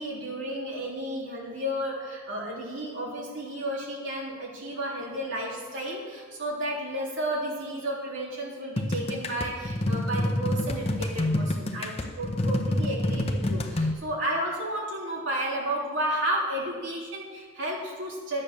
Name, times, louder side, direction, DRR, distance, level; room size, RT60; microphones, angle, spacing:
voice 1, 0.0-18.4, right 1 dB, 65° right, -4 dB, 3.4 m, -32 dB
sound 1, 8.8-13.9, left 1 dB, 30° left, 1.0 m, -27 dB
12.5 x 8.8 x 6.7 m, 1.5 s
head